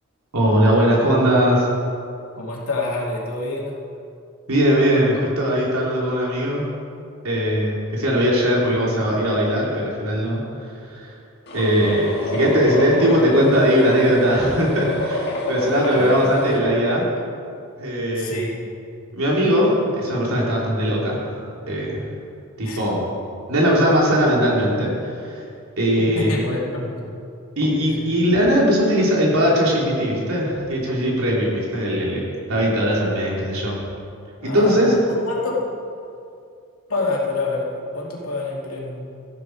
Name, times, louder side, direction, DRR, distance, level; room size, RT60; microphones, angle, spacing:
voice 1, 0.3-1.7 4.5-6.7 7.2-10.4 10.9-11.1 11.5-17.1 17.8-18.3 19.1-22.0 22.6-23.1 23.5-25.4 25.8-26.3 27.6-32.2 32.5-33.7 34.4-34.9, equal, 85° right, -4 dB, 3.3 m, -19 dB
voice 2, 2.4-3.8 15.8-16.3 18.1-18.7 22.6-22.8 26.1-27.1 27.9-28.2 34.4-35.6 36.9-39.1, left 2 dB, 80° left, -3 dB, 2.6 m, -27 dB
sound 1, 11.5-16.6, left 1 dB, 50° left, 1.8 m, -27 dB
14.0 x 11.0 x 4.7 m, 2.5 s
head